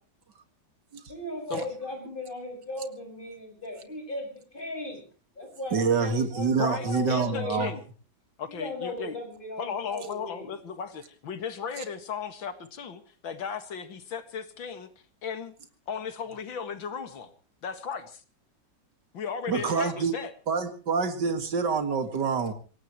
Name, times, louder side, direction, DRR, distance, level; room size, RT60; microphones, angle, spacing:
voice 1, 1.1-5.0 5.4-6.6 6.8-7.6 8.5-10.5, left 1 dB, 25° left, 2 dB, 6.2 m, -37 dB
voice 2, 5.7-7.7 19.5-20.2 20.5-22.5, right 5 dB, 65° right, 9 dB, 2.5 m, -26 dB
voice 3, 6.6-7.8 8.4-9.2 9.6-14.9 15.2-15.5 15.9-17.3 17.6-18.2 19.1-20.3, left 6 dB, 85° left, 10 dB, 2.5 m, -35 dB
26.5 x 17.5 x 3.1 m, 0.37 s
omnidirectional pair, 2.1 m